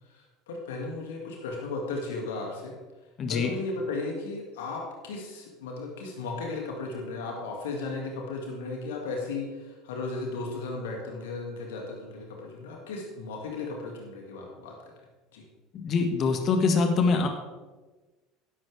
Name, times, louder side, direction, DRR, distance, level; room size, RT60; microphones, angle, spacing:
voice 1, 0.0-2.7 3.3-14.7 15.3-15.4, left 3 dB, 65° left, 0 dB, 2.2 m, -35 dB
voice 2, 3.2-3.5 15.7-17.3, left 4 dB, 35° left, 5 dB, 1.7 m, -24 dB
14.0 x 11.0 x 3.4 m, 1.2 s
figure-of-eight pair, 70°, 0 cm